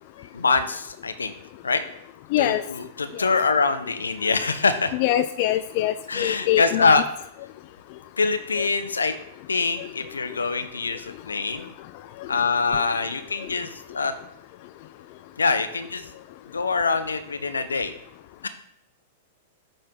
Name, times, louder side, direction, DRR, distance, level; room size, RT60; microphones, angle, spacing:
voice 1, 0.3-1.3 1.6-1.8 2.4-4.9 6.1-7.0 8.2-9.1 9.5-11.7 12.3-14.1 15.4-16.0 16.5-17.9 18.4-18.5, left 4 dB, 85° left, 10 dB, 0.7 m, -24 dB
voice 2, 4.9-6.9, left 13 dB, 50° left, 11 dB, 0.3 m, -23 dB
7.7 x 4.5 x 3.7 m, 0.77 s
hypercardioid pair, 105°, 0 cm